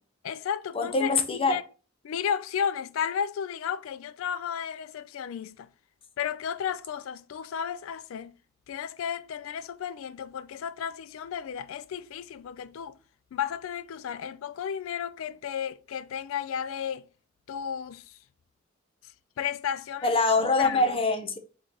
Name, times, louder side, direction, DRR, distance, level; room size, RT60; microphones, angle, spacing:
voice 1, 0.2-1.6 2.0-5.7 6.2-8.3 8.7-13.0 13.3-17.1 17.5-18.2 19.4-20.1 20.6-21.0, left 8 dB, 80° left, 0.3 m, -33 dB
voice 2, 0.7-1.6 20.0-21.4, left 3 dB, 25° left, 0.6 m, -24 dB
3.6 x 3.0 x 3.9 m
head